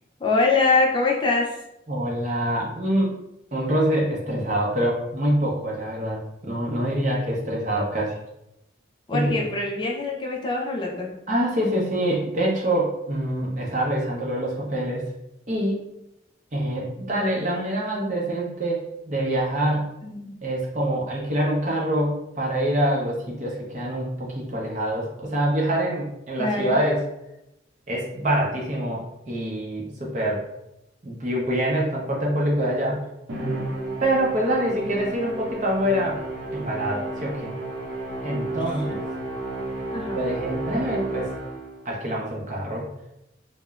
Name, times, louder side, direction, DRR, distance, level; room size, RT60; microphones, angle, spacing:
voice 1, 0.2-1.5 4.3-4.4 9.1-11.1 20.0-20.3 26.4-26.8 34.9-35.0 39.9-40.2, left 3 dB, 25° left, -1 dB, 0.3 m, -23 dB
voice 2, 1.9-3.1 3.5-8.2 9.1-9.3 11.3-15.0 15.5-15.8 16.5-19.9 20.4-27.0 27.9-30.4 31.0-33.0 34.0-36.2 36.5-37.5 38.2-39.0 40.1-41.3 41.8-42.9, right 1 dB, 40° right, -2 dB, 0.6 m, -25 dB
Musical instrument, 33.3-41.8, right 2 dB, 85° right, 0.6 m, -32 dB
3.0 x 2.0 x 2.3 m, 0.86 s
head